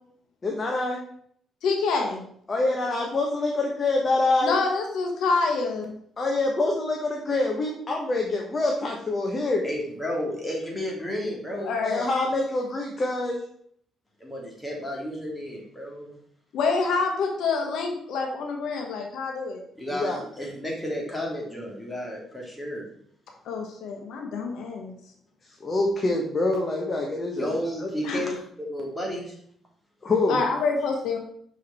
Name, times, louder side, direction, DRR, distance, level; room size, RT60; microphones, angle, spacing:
voice 1, 0.4-1.0 2.5-4.6 6.2-9.6 11.8-13.4 19.9-20.2 25.6-27.6 27.8-27.9 30.0-30.4, left 2 dB, 35° left, 0 dB, 1.2 m, -25 dB
voice 2, 1.6-2.2 4.4-6.0 11.6-12.1 16.5-19.6 23.4-24.9 28.0-28.2 30.3-31.2, left 4 dB, 80° left, 2 dB, 1.3 m, -26 dB
voice 3, 9.6-11.7 14.2-16.2 19.8-22.9 27.4-29.4, equal, 10° left, -2 dB, 2.4 m, -32 dB
6.0 x 4.9 x 4.3 m, 0.65 s
cardioid pair, 90°, 0 cm